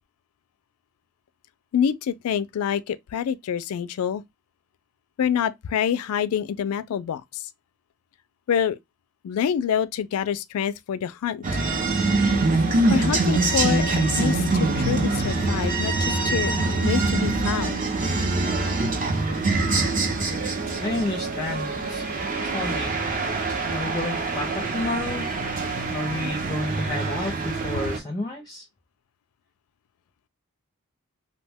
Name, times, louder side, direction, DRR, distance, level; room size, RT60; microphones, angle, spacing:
voice 1, 1.7-4.2 5.2-7.4 8.5-8.8 9.2-11.6 12.9-13.9 14.2-16.5 16.8-17.9, left 8 dB, 75° left, 0.3 m, -26 dB
sound 1, 11.4-28.0, right 2 dB, 35° right, 0.6 m, -24 dB
voice 2, 20.8-22.9 23.7-25.3 25.9-28.6, left 2 dB, 15° left, 0.5 m, -31 dB
2.7 x 2.1 x 3.4 m
head